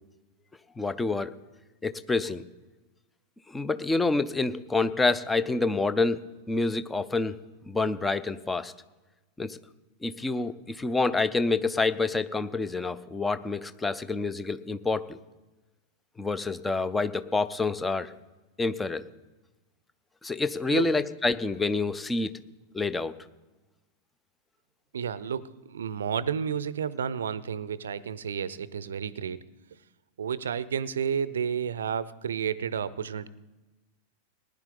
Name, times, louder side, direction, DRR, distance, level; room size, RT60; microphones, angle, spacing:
voice 1, 0.8-1.3 1.8-2.4 3.5-6.2 6.5-7.3 7.7-8.7 9.4-9.6 10.0-15.2 16.2-18.1 18.6-19.0 20.2-22.3 22.7-23.1, left 3 dB, 10° left, 14 dB, 0.6 m, -27 dB
voice 2, 24.9-29.4 30.2-33.3, right 7 dB, 65° right, 18 dB, 0.6 m, -31 dB
19.0 x 10.5 x 3.9 m, 1.1 s
figure-of-eight pair, 90°, 0 cm